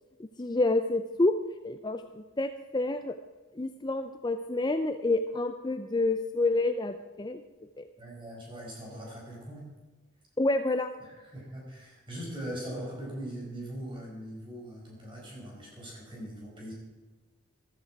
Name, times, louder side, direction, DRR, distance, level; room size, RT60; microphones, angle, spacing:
voice 1, 0.2-1.3 1.6-3.2 3.5-7.4 7.8-7.9 10.4-10.9, left 2 dB, 20° left, 8 dB, 0.4 m, -28 dB
voice 2, 8.0-9.7 11.0-16.7, right 1 dB, 25° right, -3 dB, 5.0 m, -41 dB
14.0 x 13.0 x 4.7 m, 1.3 s
head